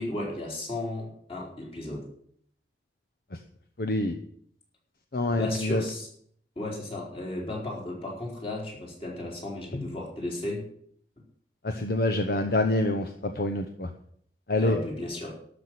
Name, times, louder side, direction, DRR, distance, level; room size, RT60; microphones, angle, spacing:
voice 1, 0.0-2.1 5.3-6.1 6.6-10.7 14.6-15.4, left 1 dB, 30° left, -2 dB, 4.1 m, -34 dB
voice 2, 3.8-4.2 5.1-5.8 11.6-13.9 14.5-14.8, left 2 dB, 55° left, 6 dB, 0.9 m, -26 dB
12.5 x 6.1 x 9.4 m, 0.65 s
head